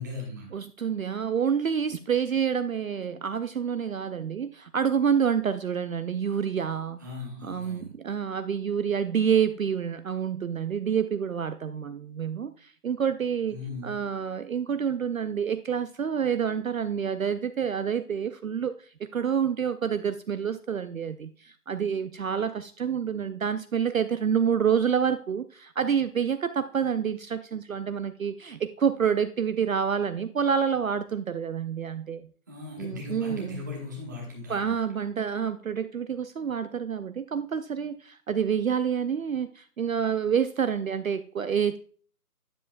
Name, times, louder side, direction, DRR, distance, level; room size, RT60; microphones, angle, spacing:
voice 1, 0.0-0.5 7.0-7.9 13.5-14.0 32.5-34.8, left 3 dB, 10° right, -2 dB, 1.0 m, -38 dB
voice 2, 0.5-7.0 7.4-13.6 13.8-32.3 32.8-33.6 34.5-41.8, right 7 dB, 60° right, 11 dB, 0.5 m, -28 dB
9.9 x 6.9 x 2.3 m, 0.43 s
figure-of-eight pair, 160°, 48 cm